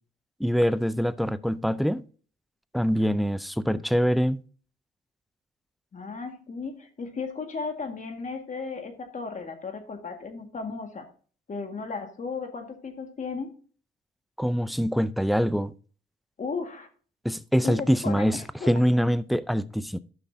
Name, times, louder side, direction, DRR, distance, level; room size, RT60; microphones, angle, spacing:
voice 1, 0.4-2.0 2.7-4.4 14.4-15.7 17.2-20.0, equal, ahead, 0.4 m, -24 dB
voice 2, 5.9-11.1 11.5-13.5 16.4-16.9 17.6-18.7, left 4 dB, 40° left, 1.9 m, -35 dB
12.5 x 5.7 x 2.7 m
cardioid pair, 90°, 20 cm